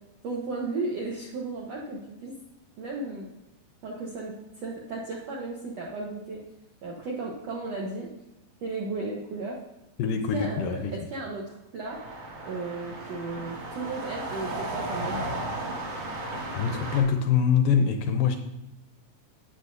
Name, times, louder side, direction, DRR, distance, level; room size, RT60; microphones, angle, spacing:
voice 1, 0.2-2.3 2.8-3.3 3.8-4.3 4.6-6.4 6.8-8.1 8.6-9.6 10.3-12.0 12.4-15.2, right 3 dB, 70° right, -3 dB, 1.6 m, -34 dB
voice 2, 10.0-10.9 16.5-18.4, left 7 dB, 80° left, 6 dB, 2.2 m, -24 dB
sound 1, 11.8-17.0, right 2 dB, 45° right, 2.7 m, -35 dB
13.0 x 8.9 x 2.7 m, 0.90 s
omnidirectional pair, 4.4 m